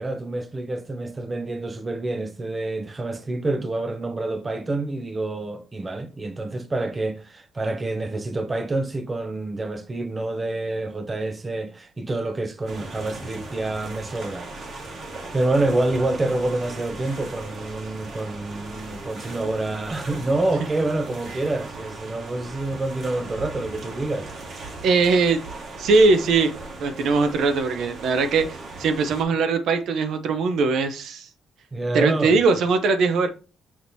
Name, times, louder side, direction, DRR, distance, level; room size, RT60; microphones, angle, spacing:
voice 1, 0.0-14.5 15.3-24.3 31.7-32.3, right 2 dB, 25° right, 0.5 m, -27 dB
sound 1, 12.7-29.2, right 2 dB, 60° right, 1.2 m, -38 dB
voice 2, 24.8-25.4 25.8-26.5 26.8-31.3 31.9-33.3, right 4 dB, 75° right, 0.5 m, -20 dB
6.2 x 2.9 x 2.6 m
cardioid pair, 90°, 0 cm